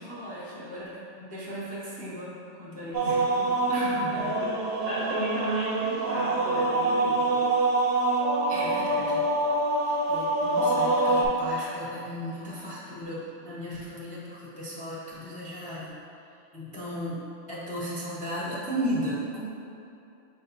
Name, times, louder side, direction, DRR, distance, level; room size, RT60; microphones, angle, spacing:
voice 1, 0.0-3.1 3.7-4.4 8.5-9.3 9.8-15.9 16.5-19.4, equal, 10° left, -8 dB, 0.4 m, -35 dB
sound 1, 2.9-11.3, right 2 dB, 65° right, 0.8 m, -25 dB
voice 2, 3.0-3.6 4.4-7.5, right 1 dB, 35° right, -8 dB, 0.8 m, -33 dB
5.2 x 2.2 x 4.0 m, 2.7 s
omnidirectional pair, 1.3 m